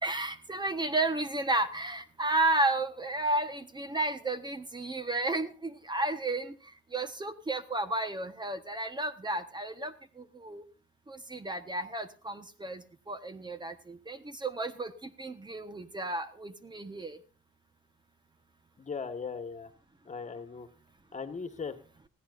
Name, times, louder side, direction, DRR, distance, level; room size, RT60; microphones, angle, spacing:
voice 1, 0.0-6.6 6.9-10.6 11.1-17.2, right 2 dB, 20° right, 10 dB, 1.2 m, -32 dB
voice 2, 18.8-19.7 20.0-20.7 21.1-21.8, left 5 dB, 35° left, 9 dB, 1.7 m, -38 dB
20.5 x 15.5 x 2.6 m, 0.36 s
cardioid pair, 90°, 20 cm